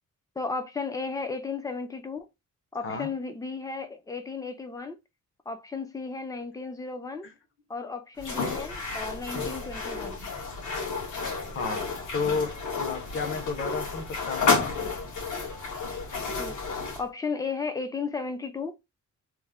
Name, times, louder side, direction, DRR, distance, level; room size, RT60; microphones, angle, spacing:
voice 1, 0.4-2.3 2.7-5.0 5.5-7.3 7.7-10.2 16.3-18.8, left 4 dB, 10° left, 0.4 m, -34 dB
sound 1, 8.2-17.0, left 4 dB, 80° left, 1.3 m, -31 dB
voice 2, 11.5-14.9, left 4 dB, 45° left, 0.8 m, -32 dB
3.1 x 2.0 x 3.5 m
wide cardioid pair, 165°, 30 cm